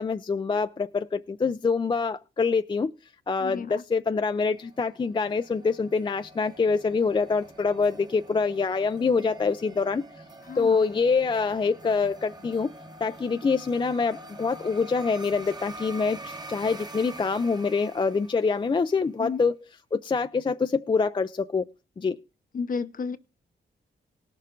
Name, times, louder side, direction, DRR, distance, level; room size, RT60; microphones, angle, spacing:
voice 1, 0.0-2.9 3.3-10.1 10.6-12.7 13.0-19.6 19.9-21.6 22.0-22.2, left 4 dB, 25° left, 0.4 m, -25 dB
voice 2, 3.4-3.8 10.4-10.8 19.2-19.5 22.5-23.2, left 5 dB, 45° left, 0.8 m, -32 dB
sound 1, 4.3-18.9, right 2 dB, 20° right, 1.0 m, -45 dB
18.5 x 6.7 x 3.8 m
wide cardioid pair, 135°, 20 cm